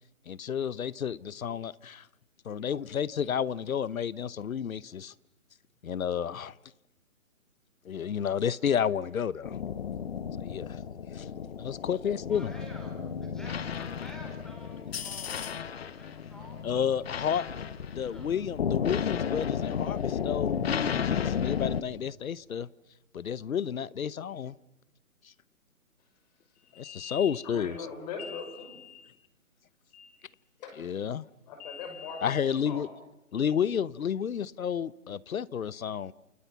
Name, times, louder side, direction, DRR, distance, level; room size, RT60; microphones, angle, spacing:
voice 1, 0.3-2.1 2.4-5.1 5.8-6.5 7.8-9.6 10.4-10.7 11.1-11.3 11.5-12.5 16.6-17.4 18.0-22.7 23.1-24.5 26.8-27.8 30.8-31.3 32.2-32.9 33.3-36.1, left 8 dB, 70° left, 1.0 m, -31 dB
sound 1, 9.4-21.8, left 7 dB, 45° left, 1.1 m, -33 dB
voice 2, 12.3-16.8 17.4-18.3, equal, ahead, 4.1 m, -49 dB
voice 3, 26.5-29.1 29.9-30.3 30.6-30.8 31.4-32.9 33.4-33.6, left 5 dB, 25° left, 6.3 m, -42 dB
29.0 x 28.5 x 6.0 m
hypercardioid pair, 160°, 43 cm